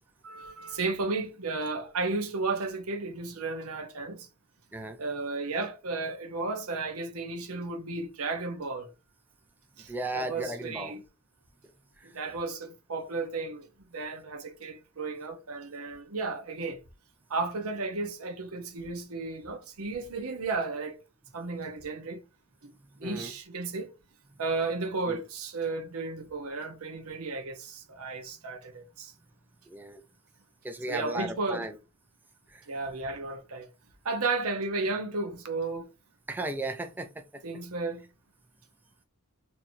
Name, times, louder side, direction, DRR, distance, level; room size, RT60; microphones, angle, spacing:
voice 1, 0.2-4.3 5.0-8.9 9.8-11.0 12.1-16.8 17.3-21.0 21.3-22.2 22.6-22.7 23.0-23.9 24.4-29.1 30.9-31.7 32.7-33.7 34.0-35.9 37.4-38.1, right 3 dB, 80° right, 0.9 m, -33 dB
voice 2, 9.9-10.9 12.0-12.1 23.0-23.3 25.1-25.2 29.7-30.0 30.6-31.8 32.5-32.7 36.3-37.4, right 1 dB, 10° right, 0.3 m, -36 dB
4.4 x 2.9 x 2.6 m
head